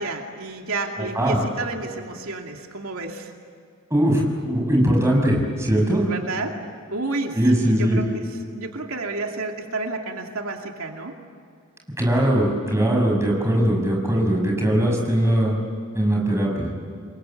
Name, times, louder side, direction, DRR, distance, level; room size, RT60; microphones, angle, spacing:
voice 1, 0.0-3.3 6.1-6.5 6.9-11.2, right 3 dB, 80° right, 2 dB, 2.6 m, -31 dB
voice 2, 3.9-6.1 7.3-8.0 12.0-15.5 15.9-16.7, right 1 dB, 15° right, 0 dB, 6.4 m, -20 dB
28.5 x 22.5 x 9.0 m, 2.3 s
head